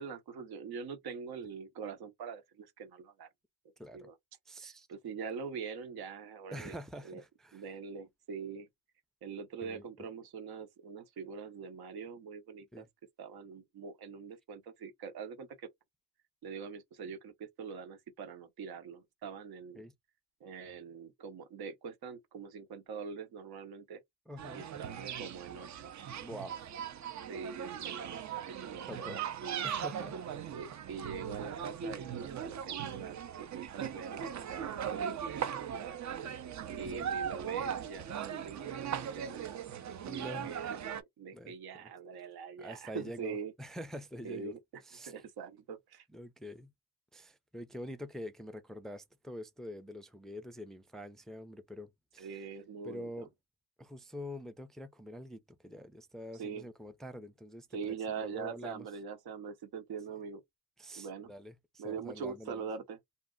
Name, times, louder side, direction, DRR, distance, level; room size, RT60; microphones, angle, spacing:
voice 1, 0.0-3.3 3.9-4.1 4.6-6.8 7.1-7.2 7.5-8.7 9.2-12.9 13.2-15.7 16.4-19.8 20.4-24.0 24.5-25.9 27.3-29.7 30.5-36.2 36.7-39.8 40.1-43.5 44.2-44.8 45.1-46.0 52.2-53.3 56.4-56.7 57.7-60.4 61.0-61.3 61.8-63.0, right 6 dB, 70° right, 0.9 m, -43 dB
voice 2, 3.8-4.1 4.5-4.9 6.5-7.6 9.6-9.9 12.7-12.9 19.7-19.9 24.3-24.7 26.2-26.7 28.9-29.2 29.6-30.2 36.8-37.1 40.0-40.6 41.3-41.9 42.6-44.5 44.8-45.1 46.1-46.7 47.1-52.5 52.8-53.3 53.8-58.9 60.8-62.7, equal, ahead, 0.4 m, -46 dB
sound 1, 24.4-41.0, right 8 dB, 45° right, 0.6 m, -39 dB
2.5 x 2.0 x 3.7 m
supercardioid pair, 70°, 40 cm